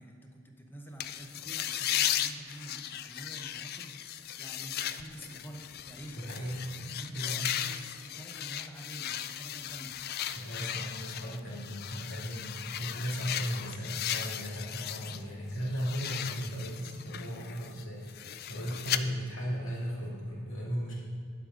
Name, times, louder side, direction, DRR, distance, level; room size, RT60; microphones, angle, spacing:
voice 1, 0.0-6.6 7.0-10.0, right 1 dB, 10° left, 2 dB, 0.8 m, -48 dB
sound 1, 1.0-15.2 15.5-19.0, left 11 dB, 45° left, 0.3 m, -36 dB
voice 2, 6.2-7.5 10.3-20.9, equal, 65° left, -5 dB, 2.5 m, -36 dB
11.5 x 5.0 x 5.0 m, 2.3 s
head